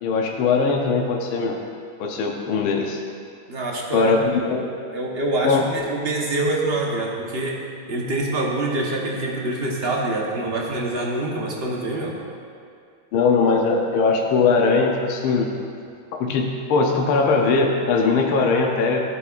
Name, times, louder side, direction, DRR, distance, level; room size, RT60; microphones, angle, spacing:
voice 1, 0.0-1.6 2.0-3.0 3.9-4.7 5.4-5.6 13.1-15.5 16.2-19.1, left 4 dB, 80° left, 0 dB, 1.6 m, -20 dB
voice 2, 3.5-4.6 4.9-7.6 7.9-12.1, right 2 dB, 35° right, -2 dB, 1.1 m, -25 dB
15.5 x 8.3 x 2.5 m, 2.3 s
omnidirectional pair, 2.3 m